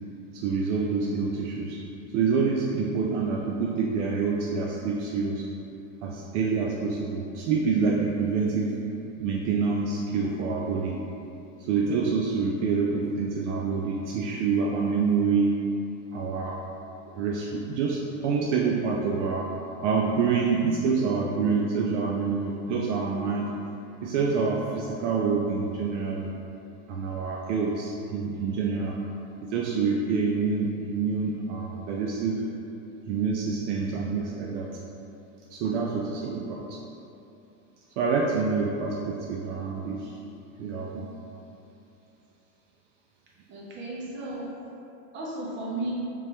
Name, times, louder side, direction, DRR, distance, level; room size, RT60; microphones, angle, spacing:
voice 1, 0.3-1.8 2.1-5.5 6.0-8.8 9.2-11.0 11.6-15.6 16.1-16.6 17.1-19.5 19.8-23.5 24.0-26.3 26.9-29.0 29.4-32.5 33.1-34.7 35.5-36.8 38.0-40.2 40.6-41.1, right 5 dB, 60° right, -1 dB, 0.5 m, -27 dB
voice 2, 43.5-44.5 45.1-45.9, right 2 dB, 30° right, -5 dB, 0.8 m, -34 dB
3.6 x 3.2 x 2.9 m, 2.8 s
supercardioid pair, 135°, 40 cm